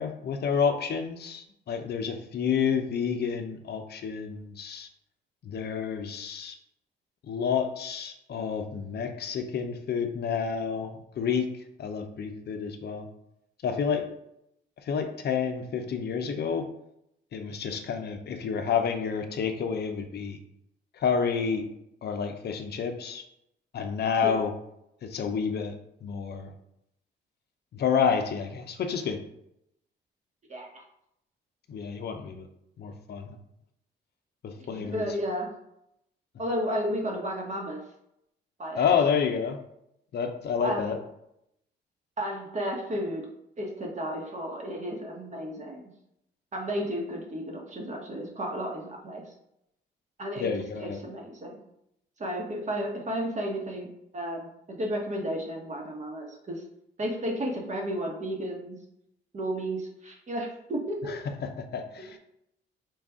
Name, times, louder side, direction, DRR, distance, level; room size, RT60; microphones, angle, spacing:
voice 1, 0.0-4.9 5.4-6.6 7.3-11.5 11.8-13.1 13.6-14.1 14.9-16.7 17.3-20.4 21.0-21.6 22.0-23.2 23.7-24.5 25.0-25.7 26.0-26.5 27.7-29.2 31.7-32.5 32.8-33.4 34.4-35.0 38.7-39.6 40.1-41.0 50.4-51.0 61.1-62.2, left 6 dB, 55° left, 6 dB, 0.6 m, -29 dB
voice 2, 30.5-30.8 34.7-35.5 36.4-37.8 38.6-38.9 40.6-40.9 42.2-43.2 43.6-45.8 46.5-49.2 50.2-50.5 50.8-51.6 52.2-53.9 54.1-56.6 57.0-58.8 59.3-61.1, equal, 35° right, 0 dB, 1.2 m, -33 dB
4.7 x 2.5 x 3.6 m, 0.80 s
cardioid pair, 90°, 20 cm